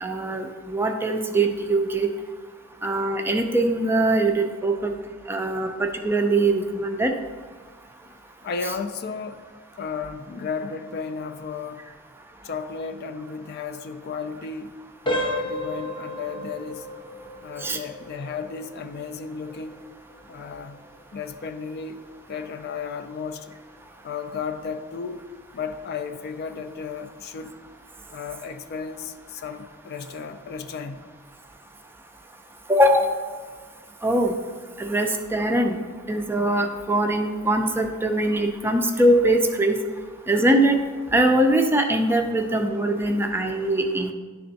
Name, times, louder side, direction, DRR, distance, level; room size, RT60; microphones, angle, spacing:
voice 1, 0.0-2.1 2.8-4.9 5.3-7.1 17.6-17.8 32.7-33.1 34.0-34.3 34.8-35.8 36.1-39.8 40.3-40.8 41.1-44.1, right 1 dB, 10° right, 0.4 m, -22 dB
voice 2, 8.4-9.4 9.8-11.8 12.4-14.7 15.1-16.9 17.4-19.8 20.3-20.8 21.1-22.0 22.3-23.6 24.0-25.2 25.5-27.5 28.1-31.0, left 5 dB, 50° left, 0.4 m, -34 dB
sound 1, 15.0-25.7 26.1-26.3 26.9-27.0 27.5-27.6, equal, 25° left, 0.7 m, -35 dB
10.0 x 3.4 x 4.0 m
head